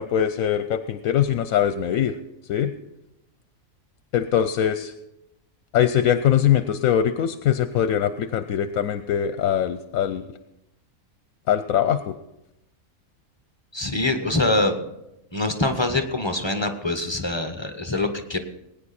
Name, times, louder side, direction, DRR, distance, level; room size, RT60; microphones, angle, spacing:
voice 1, 0.0-2.1 2.5-2.7 4.1-4.9 5.7-10.2 11.5-12.1, left 9 dB, 75° left, 11 dB, 1.0 m, -22 dB
voice 2, 13.7-14.7 15.3-18.4, left 2 dB, 20° left, 6 dB, 1.0 m, -24 dB
21.0 x 9.6 x 4.2 m, 0.90 s
omnidirectional pair, 1.5 m